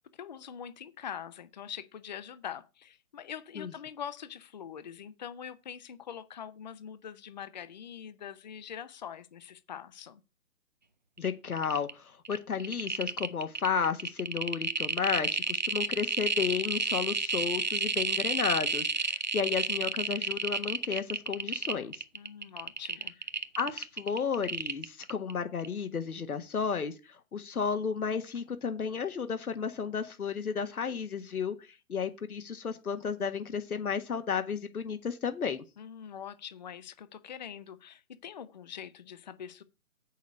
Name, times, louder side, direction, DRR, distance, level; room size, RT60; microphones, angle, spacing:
voice 1, 0.0-10.2 22.1-23.2 35.8-39.6, left 8 dB, 30° left, 0.6 m, -43 dB
voice 2, 11.2-22.0 23.5-35.6, left 6 dB, 90° left, 1.5 m, -33 dB
sound 1, 11.2-11.3 11.5-11.9 12.2-25.3 25.6-25.7, right 4 dB, 35° right, 0.4 m, -31 dB
8.3 x 6.3 x 5.3 m
hypercardioid pair, 155°, 43 cm